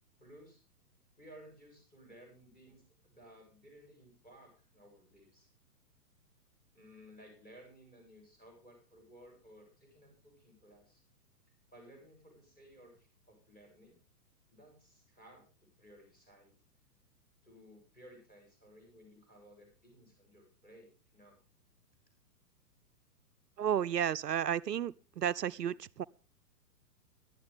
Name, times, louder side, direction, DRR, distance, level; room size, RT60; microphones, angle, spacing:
voice 1, 0.2-0.6 1.2-5.5 6.7-11.0 11.7-14.0 14.5-16.5 17.4-21.4, equal, 15° left, 8.0 m, -58 dB
voice 2, 23.6-26.0, right 9 dB, 75° right, 0.6 m, -32 dB
18.0 x 12.0 x 3.6 m
figure-of-eight pair, 120°, 48 cm